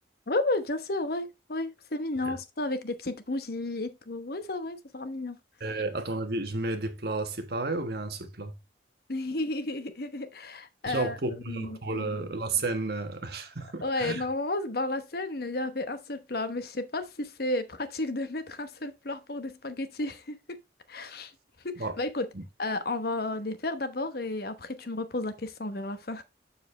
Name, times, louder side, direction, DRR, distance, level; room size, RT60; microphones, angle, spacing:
voice 1, 0.3-5.4 9.1-11.2 11.5-12.1 13.8-20.6 20.9-21.3 21.6-22.3 22.6-26.2, left 2 dB, 55° left, 1.0 m, -32 dB
voice 2, 5.6-8.5 10.8-14.2 21.8-21.9 22.3-22.4, right 3 dB, 60° right, 1.3 m, -32 dB
7.2 x 6.8 x 3.2 m
head